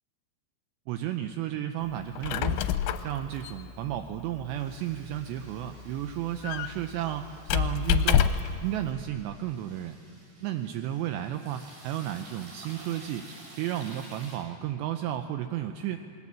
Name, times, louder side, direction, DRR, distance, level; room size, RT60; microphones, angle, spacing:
voice 1, 0.9-2.6 3.0-8.3 8.6-10.0 10.4-13.3 13.6-16.0, right 12 dB, 85° right, 7 dB, 2.5 m, -33 dB
Squeak, 2.0-8.6, left 9 dB, 80° left, 3.0 m, -29 dB
sound 1, 4.5-14.4, right 2 dB, 50° right, 7.4 m, -52 dB
27.5 x 20.0 x 7.4 m, 2.3 s
omnidirectional pair, 5.8 m